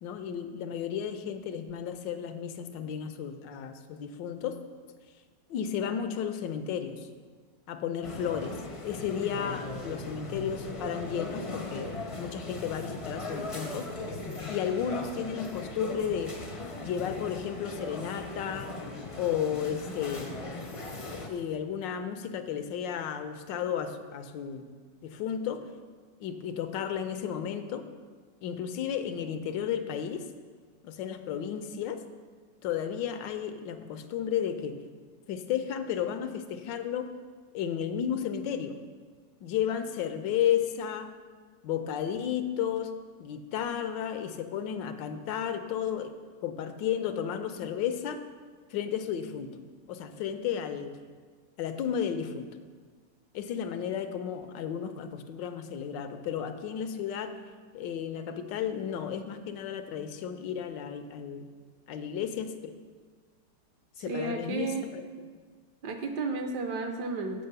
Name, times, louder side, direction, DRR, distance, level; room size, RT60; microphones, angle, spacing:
voice 1, 0.0-4.6 5.5-7.1 7.7-13.9 14.5-16.4 16.8-18.7 19.2-20.3 21.3-24.6 25.0-25.7 26.2-27.9 28.4-30.3 30.8-32.0 32.6-34.8 35.3-37.1 37.5-38.8 39.4-41.1 41.6-46.1 46.4-48.2 48.7-49.5 49.9-50.9 51.6-52.5 53.3-57.3 57.7-61.5 61.9-62.7 64.0-65.1, left 8 dB, 90° left, 8 dB, 1.3 m, -33 dB
sound 1, 8.0-21.3, left 2 dB, 50° left, 0.4 m, -38 dB
voice 2, 64.1-64.9 65.8-67.5, right 3 dB, 70° right, 5 dB, 1.4 m, -32 dB
7.7 x 5.2 x 6.7 m, 1.5 s
omnidirectional pair, 1.9 m